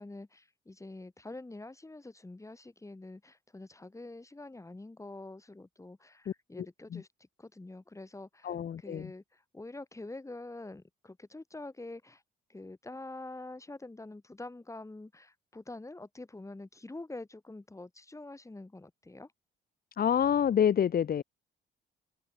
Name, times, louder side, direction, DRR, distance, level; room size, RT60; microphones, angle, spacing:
voice 1, 0.0-7.1 7.4-12.2 12.5-19.3, left 2 dB, 15° left, 4.7 m, -46 dB
voice 2, 6.3-6.7 6.9-7.0 8.4-9.1 20.0-21.2, left 9 dB, 50° left, 1.1 m, -28 dB
cardioid pair, 90°, 20 cm